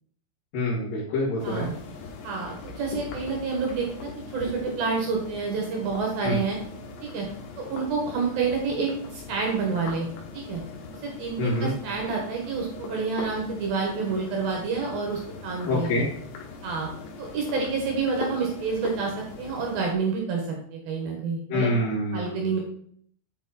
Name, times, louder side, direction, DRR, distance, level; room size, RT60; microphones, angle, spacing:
voice 1, 0.5-1.7 6.2-6.4 11.4-11.7 15.7-16.1 21.5-22.6, left 1 dB, 50° left, -10 dB, 3.2 m, -26 dB
sound 1, 1.4-19.9, left 4 dB, 80° left, 4.0 m, -41 dB
voice 2, 2.2-6.6 7.0-7.3 7.6-10.1 10.3-10.6 11.0-16.1 16.6-16.9 17.2-21.7 22.1-22.6, right 4 dB, 70° right, 0 dB, 2.3 m, -28 dB
9.0 x 4.7 x 4.1 m, 0.62 s
omnidirectional pair, 5.9 m